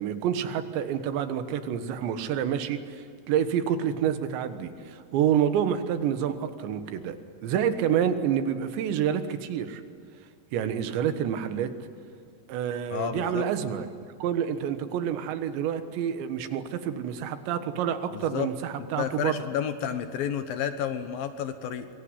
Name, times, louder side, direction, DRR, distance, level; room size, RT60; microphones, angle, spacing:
voice 1, 0.0-7.2 7.4-9.8 10.5-11.7 12.5-13.9 14.2-19.3, right 9 dB, 75° right, 9 dB, 3.6 m, -28 dB
voice 2, 12.9-13.5 18.1-18.5 19.0-21.9, left 8 dB, 70° left, 9 dB, 2.4 m, -31 dB
24.5 x 23.0 x 9.8 m, 2.4 s
omnidirectional pair, 5.3 m